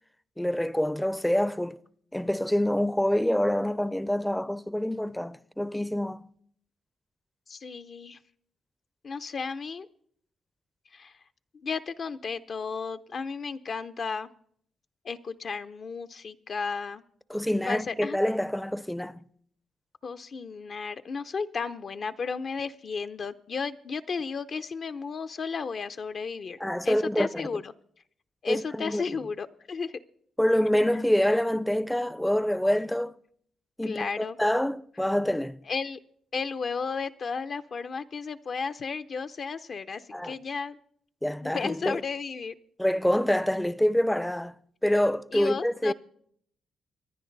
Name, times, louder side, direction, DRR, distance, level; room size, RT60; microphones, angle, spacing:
voice 1, 0.4-1.8 2.1-6.3 17.3-19.2 26.6-27.3 28.5-29.1 30.4-33.2 33.8-35.6 40.1-40.3 41.2-42.0 42.8-44.6 44.8-45.9, equal, 5° left, 0.5 m, -26 dB
voice 2, 7.5-8.2 9.0-9.9 10.9-11.2 11.6-14.3 15.0-17.0 17.7-18.2 20.0-26.6 26.8-27.7 28.4-30.0 33.8-34.4 35.7-36.0 36.3-40.8 41.4-42.5 45.3-45.9, left 5 dB, 50° left, 0.6 m, -34 dB
25.5 x 10.0 x 4.0 m
cardioid pair, 100°, 0 cm